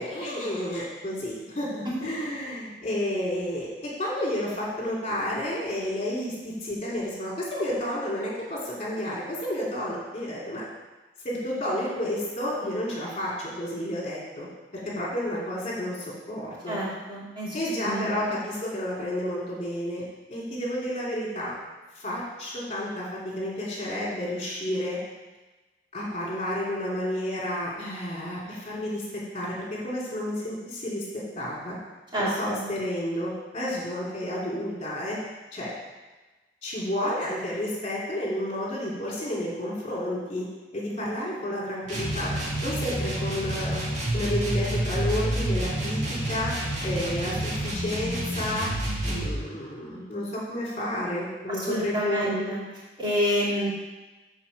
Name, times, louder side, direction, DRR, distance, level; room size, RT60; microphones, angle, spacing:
voice 1, 0.0-10.6 11.2-14.5 14.7-16.8 17.5-20.0 20.3-21.5 21.9-25.0 25.9-31.1 31.4-31.8 32.2-35.2 35.5-35.7 36.6-40.5 40.7-42.3 42.6-43.8 44.1-46.5 46.8-48.7 49.0-52.5, left 1 dB, 35° left, -6 dB, 2.9 m, -31 dB
voice 2, 16.7-17.5 17.8-18.3 32.1-32.6 51.7-52.6 53.0-53.7, equal, 25° right, -8 dB, 3.0 m, -28 dB
sound 1, 41.9-49.4, right 1 dB, 45° right, 1.8 m, -29 dB
7.9 x 4.4 x 7.0 m, 1.2 s
head